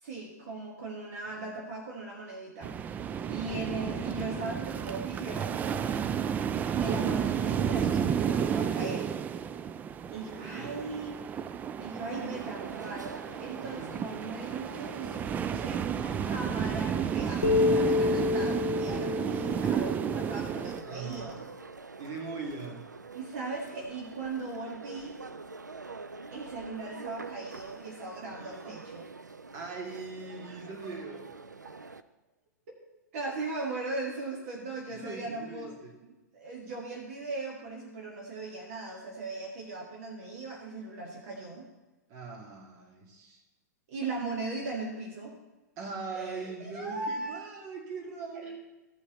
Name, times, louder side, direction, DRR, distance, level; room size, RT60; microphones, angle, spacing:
voice 1, 0.0-3.0 3.3-6.1 6.8-9.1 10.1-11.4 11.8-21.4 23.1-25.2 26.3-29.0 32.9-35.7 36.3-41.7 43.9-45.3 46.1-47.5, right 3 dB, 50° right, -1 dB, 1.9 m, -38 dB
voice 2, 1.3-1.6 3.2-3.9 10.0-10.7 13.6-14.1 20.8-21.5 22.0-22.9 28.4-28.8 29.5-31.3 34.9-36.0 42.1-43.4 45.8-48.6, right 4 dB, 35° right, 1 dB, 2.3 m, -41 dB
sound 1, 2.6-20.8, right 8 dB, 15° right, 0.3 m, -32 dB
sound 2, 12.1-32.0, right 4 dB, 85° right, 0.5 m, -46 dB
sound 3, 17.4-20.9, left 4 dB, 80° left, 0.8 m, -28 dB
15.5 x 5.5 x 4.1 m, 1.1 s
figure-of-eight pair, 105°, 9 cm